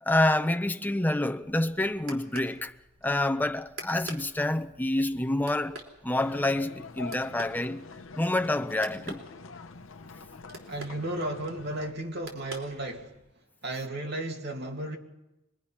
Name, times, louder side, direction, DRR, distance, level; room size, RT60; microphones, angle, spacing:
voice 1, 0.0-2.7 3.0-5.8 6.0-7.8 8.2-9.2, left 1 dB, 10° left, 0.7 m, -27 dB
sound 1, 1.4-13.3, right 3 dB, 80° right, 3.5 m, -48 dB
sound 2, 6.2-11.9, left 4 dB, 85° left, 0.9 m, -45 dB
voice 2, 10.7-13.1 13.6-15.0, right 1 dB, 60° right, 2.4 m, -34 dB
24.5 x 20.5 x 5.7 m
head